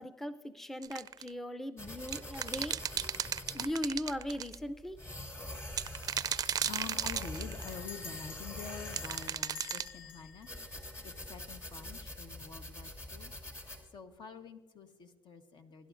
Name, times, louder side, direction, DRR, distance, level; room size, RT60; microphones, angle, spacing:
voice 1, 0.0-2.8 3.5-5.0, equal, 5° left, 10 dB, 0.5 m, -38 dB
sound 1, 0.8-1.3 2.1-4.5 5.7-7.7 8.9-9.9, right 8 dB, 45° right, 0.4 m, -35 dB
sound 2, 1.8-13.8, left 1 dB, 35° left, 2.7 m, -45 dB
voice 2, 6.1-10.5 11.0-13.3 13.9-15.9, left 6 dB, 60° left, 7 dB, 1.1 m, -47 dB
Bell, 6.6-6.8 7.6-11.7, left 6 dB, 80° left, 0.8 m, -50 dB
21.5 x 11.5 x 2.6 m, 1.2 s
cardioid pair, 95°, 9 cm